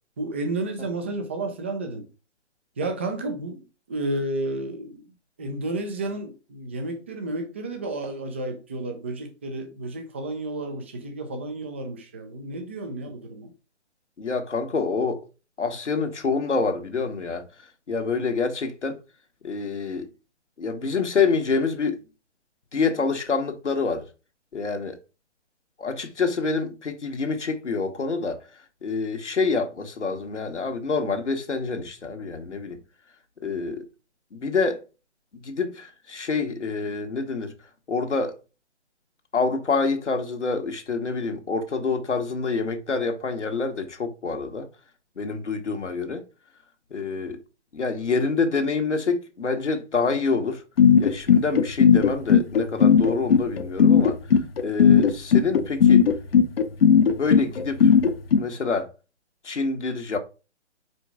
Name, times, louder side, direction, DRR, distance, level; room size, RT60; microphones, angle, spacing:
voice 1, 0.2-2.1 2.8-5.1 5.4-13.5, right 2 dB, 10° right, 0.4 m, -31 dB
voice 2, 14.2-15.3 15.6-17.4 17.9-19.0 19.4-20.1 20.6-22.0 22.7-24.1 24.5-25.0 25.8-28.4 28.8-32.8 33.4-33.8 34.3-34.8 35.3-37.5 37.9-38.4 39.3-44.7 45.2-46.2 46.9-47.4 47.7-50.6 51.0-54.2 54.6-56.1 57.1-57.9 58.4-58.9 59.4-60.2, left 4 dB, 80° left, 1.6 m, -27 dB
sound 1, 50.8-58.4, left 7 dB, 55° left, 0.9 m, -16 dB
5.1 x 4.7 x 4.9 m
figure-of-eight pair, 145°, 35 cm